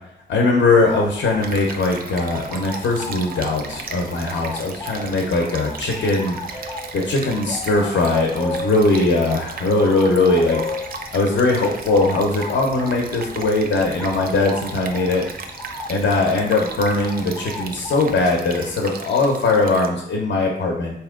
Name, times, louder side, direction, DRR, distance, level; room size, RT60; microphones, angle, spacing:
voice 1, 0.3-10.6 11.1-15.2 15.9-21.0, left 2 dB, 75° left, 1 dB, 0.7 m, -20 dB
sound 1, 0.7-18.8, left 2 dB, 20° left, 0.4 m, -35 dB
Stream, 1.4-19.9, right 4 dB, 50° right, 0.4 m, -37 dB
4.5 x 2.8 x 3.6 m, 0.75 s
wide cardioid pair, 170°, 20 cm